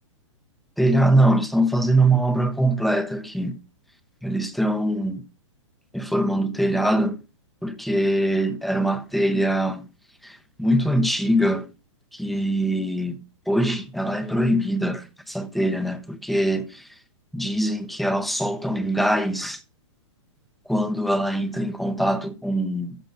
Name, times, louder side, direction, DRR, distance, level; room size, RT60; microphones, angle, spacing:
voice 1, 0.8-3.6 4.2-5.2 5.9-7.2 7.6-9.9 10.2-11.7 12.1-16.9 17.3-19.6 20.7-23.0, right 1 dB, ahead, 0.8 m, -23 dB
14.0 x 6.5 x 2.6 m
hypercardioid pair, 135°, 16 cm